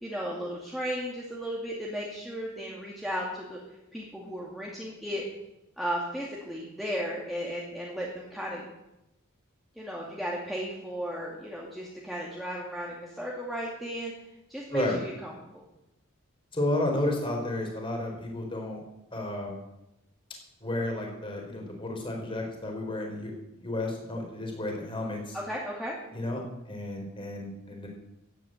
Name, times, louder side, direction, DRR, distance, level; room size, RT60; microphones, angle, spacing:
voice 1, 0.0-3.6 3.9-5.2 5.8-8.7 9.8-14.1 14.5-15.6 25.3-26.0, equal, ahead, -4 dB, 2.4 m, -35 dB
voice 2, 16.5-18.8 19.1-19.6 20.6-23.3 23.6-25.4 26.1-27.9, left 1 dB, 25° left, 1 dB, 4.3 m, -32 dB
14.0 x 9.6 x 9.0 m, 0.91 s
head